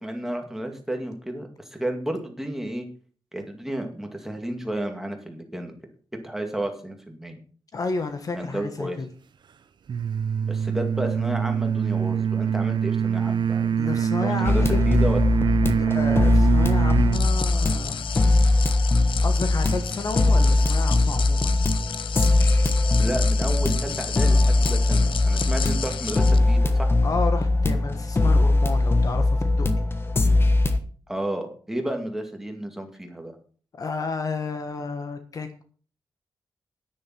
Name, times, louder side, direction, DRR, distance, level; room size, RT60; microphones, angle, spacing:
voice 1, 0.0-2.9 3.3-5.7 6.2-7.4 8.3-9.0 10.4-13.9 14.2-15.2 23.0-26.9 31.1-33.3, right 1 dB, 5° right, 4 dB, 2.2 m, -32 dB
voice 2, 7.7-9.1 13.8-14.8 15.7-18.1 19.2-21.6 27.0-29.7 33.7-35.6, left 4 dB, 45° left, 8 dB, 1.4 m, -31 dB
sound 1, 9.9-17.3, right 8 dB, 60° right, 0.9 m, -24 dB
sound 2, 14.4-30.8, left 2 dB, 25° left, 1.2 m, -21 dB
sound 3, 17.1-26.4, left 8 dB, 80° left, 1.0 m, -34 dB
10.0 x 9.9 x 6.0 m, 0.42 s
wide cardioid pair, 170°, 9 cm